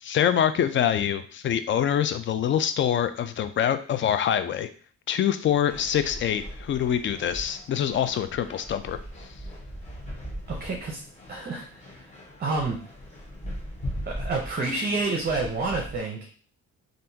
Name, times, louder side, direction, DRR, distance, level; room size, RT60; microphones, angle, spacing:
voice 1, 0.0-4.7 5.1-9.0, left 9 dB, 40° left, 11 dB, 0.4 m, -25 dB
sound 1, 5.7-16.0, equal, 25° left, 1.2 m, -39 dB
voice 2, 10.5-11.0 11.3-12.1 12.4-12.8 14.1-16.3, right 3 dB, 30° right, 1 dB, 0.7 m, -29 dB
3.5 x 2.5 x 2.7 m, 0.42 s
cardioid pair, 90°, 30 cm